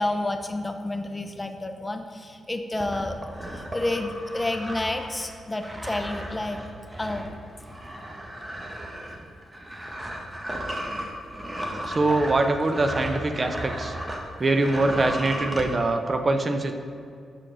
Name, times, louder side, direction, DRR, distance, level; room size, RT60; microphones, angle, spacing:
voice 1, 0.0-3.2 3.5-6.6 7.0-7.3, left 2 dB, 25° left, 7 dB, 0.5 m, -30 dB
sound 1, 2.8-14.3 14.5-15.7, right 1 dB, 20° right, 1.0 m, -35 dB
voice 2, 11.8-13.9 14.4-16.7, right 2 dB, 40° right, 6 dB, 0.5 m, -23 dB
7.2 x 4.9 x 3.3 m, 2.4 s
supercardioid pair, 55°, 0 cm